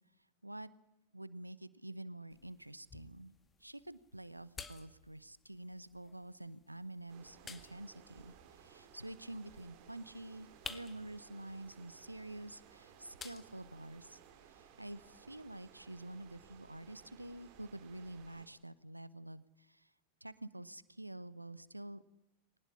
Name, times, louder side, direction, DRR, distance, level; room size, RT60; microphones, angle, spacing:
voice 1, 1.1-3.3 3.6-19.9 20.2-22.0, right 1 dB, 85° right, 18 dB, 0.9 m, -48 dB
sound 1, 2.3-14.3, left 5 dB, 15° left, 1.9 m, -55 dB
sound 2, 7.1-18.5, right 8 dB, 45° right, 4.1 m, -60 dB
21.5 x 19.5 x 9.7 m, 0.92 s
figure-of-eight pair, 90°, 0 cm